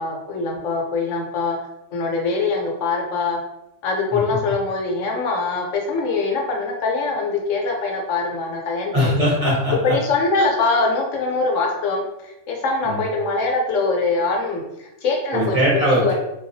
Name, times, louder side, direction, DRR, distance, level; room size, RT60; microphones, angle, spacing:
voice 1, 0.0-1.6 1.9-3.4 3.8-9.3 9.8-15.6 16.0-16.1, left 3 dB, 85° left, 0 dB, 1.0 m, -23 dB
voice 2, 8.9-10.0 12.8-13.0 15.3-16.1, equal, 35° right, -7 dB, 0.7 m, -20 dB
2.3 x 2.2 x 2.6 m, 0.90 s
omnidirectional pair, 1.3 m